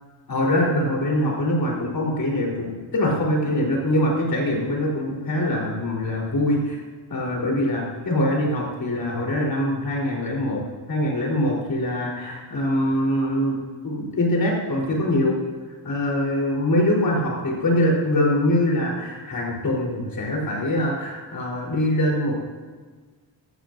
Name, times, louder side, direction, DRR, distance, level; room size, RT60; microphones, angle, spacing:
voice 1, 0.3-6.8 7.1-10.6 10.9-13.6 13.8-15.3 15.8-22.4, left 1 dB, 50° left, -2 dB, 3.9 m, -23 dB
16.5 x 12.5 x 2.6 m, 1.4 s
wide cardioid pair, 120°, 44 cm